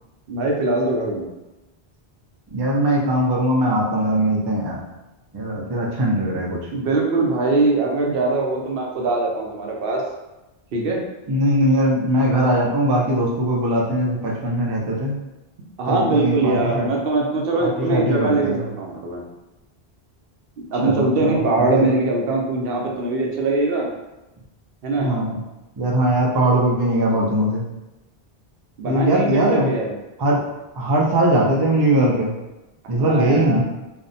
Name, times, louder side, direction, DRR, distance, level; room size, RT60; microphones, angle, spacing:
voice 1, 0.3-1.3 6.7-10.0 10.7-11.0 15.8-19.2 20.7-23.9 24.8-25.1 28.8-29.9 32.9-33.6, right 2 dB, 70° right, -1 dB, 0.7 m, -22 dB
voice 2, 2.5-4.8 5.3-6.7 11.3-15.2 15.9-17.0 17.6-18.6 20.8-21.9 25.0-25.4 25.8-27.6 28.8-29.7 30.2-30.4 30.8-32.3 32.9-33.6, right 1 dB, 45° right, -3 dB, 0.3 m, -20 dB
2.7 x 2.1 x 2.6 m, 1.0 s
omnidirectional pair, 1.0 m